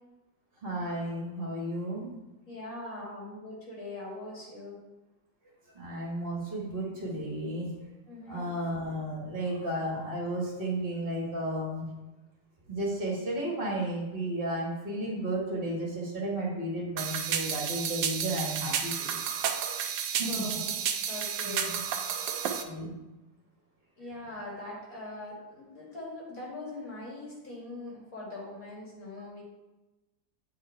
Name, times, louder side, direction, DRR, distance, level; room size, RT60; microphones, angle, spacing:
voice 1, 0.6-2.1 5.7-7.7 8.3-11.8 12.7-19.2 20.2-20.4 21.4-21.8 22.5-23.0, right 1 dB, 30° right, -4 dB, 1.6 m, -33 dB
voice 2, 2.5-4.8 8.1-8.5 20.1-20.7 21.1-21.8 24.0-29.4, left 2 dB, 50° left, -4 dB, 2.5 m, -41 dB
sound 1, 17.0-22.6, right 8 dB, 85° right, 1.4 m, -31 dB
8.2 x 4.8 x 4.5 m, 1.0 s
omnidirectional pair, 2.0 m